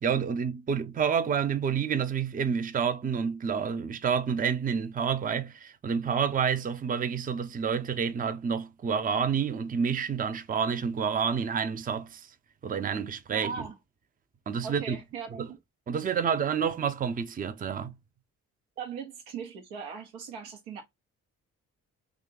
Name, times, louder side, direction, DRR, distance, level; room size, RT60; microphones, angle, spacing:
voice 1, 0.0-12.3 12.6-13.7 14.5-15.0 15.4-15.5 15.9-17.9, right 7 dB, 20° right, 0.5 m, -29 dB
voice 2, 13.3-13.7 14.6-15.6 18.8-20.8, right 6 dB, 85° right, 0.8 m, -39 dB
2.8 x 2.4 x 3.7 m
hypercardioid pair, 45°, 39 cm